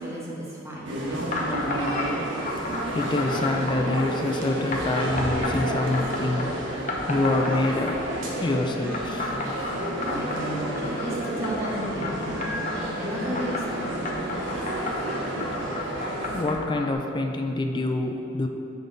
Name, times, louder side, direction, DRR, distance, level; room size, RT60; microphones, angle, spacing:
voice 1, 0.0-1.7 10.1-14.2, right 1 dB, 15° right, -5 dB, 1.3 m, -34 dB
sound 1, 0.9-16.4, right 1 dB, 80° right, 1.1 m, -31 dB
sound 2, 1.3-2.1 2.4-4.1 4.7-6.5 6.9-8.2 8.9-12.8 13.3-16.9, left 3 dB, 40° left, 0.8 m, -32 dB
voice 2, 2.9-8.0 8.4-9.3 16.3-18.5, left 2 dB, 25° left, 4 dB, 0.4 m, -26 dB
7.3 x 5.2 x 4.0 m, 2.7 s
head